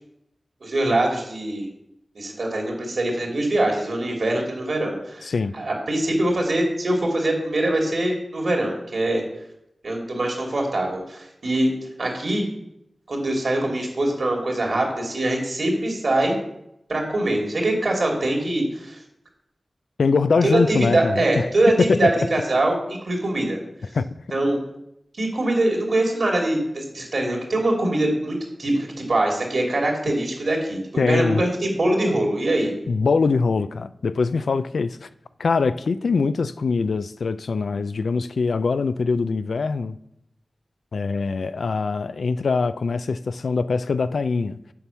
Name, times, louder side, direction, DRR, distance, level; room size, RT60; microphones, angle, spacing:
voice 1, 0.6-1.7 2.1-5.3 5.5-9.2 9.8-11.7 12.0-12.4 13.1-16.3 16.9-19.0 20.5-21.7 22.0-23.6 24.3-24.6 25.2-32.7, right 1 dB, 70° right, 2.5 m, -23 dB
voice 2, 5.2-5.5 20.0-21.5 21.7-22.1 23.9-24.1 31.0-31.4 32.9-35.1 35.4-40.0 40.9-44.6, left 4 dB, 85° left, 0.3 m, -23 dB
7.2 x 4.6 x 6.8 m
cardioid pair, 50°, 0 cm